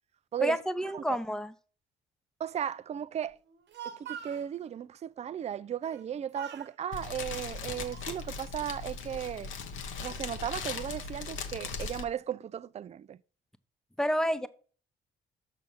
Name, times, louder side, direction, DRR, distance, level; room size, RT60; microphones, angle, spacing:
voice 1, 0.4-1.5 14.0-14.5, equal, 5° left, 0.8 m, -29 dB
voice 2, 2.4-3.4 3.8-9.5 10.0-13.2, right 9 dB, 35° right, 0.4 m, -36 dB
Speech, 3.5-4.5 5.8-6.1 6.3-6.7 7.4-8.3, right 9 dB, 60° right, 1.0 m, -44 dB
Fire, 6.9-12.0, left 5 dB, 80° left, 1.1 m, -39 dB
6.2 x 6.2 x 5.5 m
cardioid pair, 90°, 20 cm